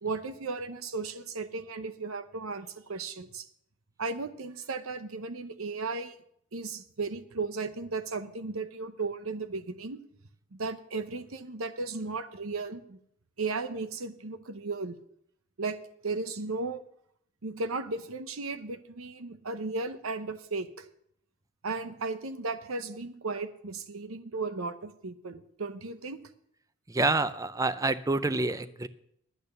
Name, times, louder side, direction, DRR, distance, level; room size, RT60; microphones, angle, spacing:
voice 1, 0.0-3.5 4.0-6.1 6.5-10.0 10.5-13.0 13.4-14.9 15.6-15.8 16.0-16.8 17.4-20.9 21.6-26.2, right 3 dB, 80° right, 12 dB, 0.9 m, -35 dB
voice 2, 26.9-28.9, right 3 dB, 15° right, 14 dB, 0.5 m, -27 dB
10.5 x 8.9 x 6.8 m, 0.71 s
head